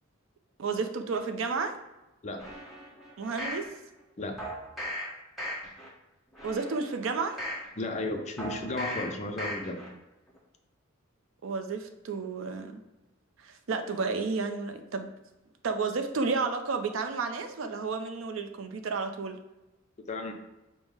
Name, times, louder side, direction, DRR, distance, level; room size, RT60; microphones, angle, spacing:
voice 1, 0.6-1.7 3.2-3.7 6.4-7.4 11.4-12.8 13.4-15.1 15.6-19.4, right 4 dB, 70° right, 7 dB, 0.5 m, -31 dB
sound 1, 2.4-3.6 4.4-5.0 5.4-5.9 6.3-7.6 8.4-9.0 9.4-9.9 10.3-10.4, equal, ahead, 1.1 m, -37 dB
voice 2, 7.8-9.9 20.1-20.3, left 2 dB, 35° left, 5 dB, 0.5 m, -34 dB
5.3 x 2.1 x 4.7 m, 1.0 s
head